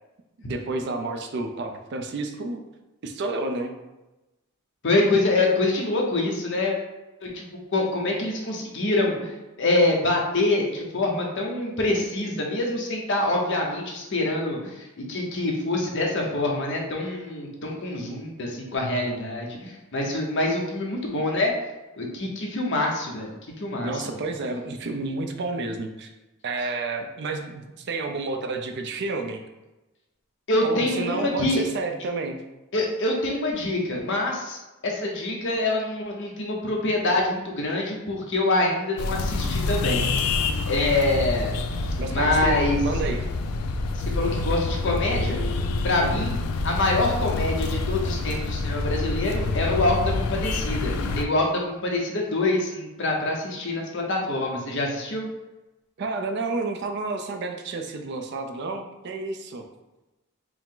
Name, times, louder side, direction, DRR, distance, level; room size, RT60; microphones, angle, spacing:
voice 1, 0.4-2.6 3.0-3.8 23.8-26.1 26.4-29.4 30.6-32.4 42.0-43.2 46.0-46.3 56.0-59.7, right 3 dB, 50° right, 5 dB, 0.4 m, -30 dB
voice 2, 4.8-6.8 7.2-7.4 7.7-9.3 9.6-21.5 22.0-24.0 30.5-31.6 32.7-40.0 40.7-41.6 42.1-42.8 43.9-45.4 45.8-46.4 46.6-55.3, left 2 dB, 55° left, 0 dB, 0.8 m, -25 dB
sound 1, 39.0-51.3, left 3 dB, 85° left, 0.4 m, -27 dB
4.6 x 2.0 x 3.8 m, 1.0 s
head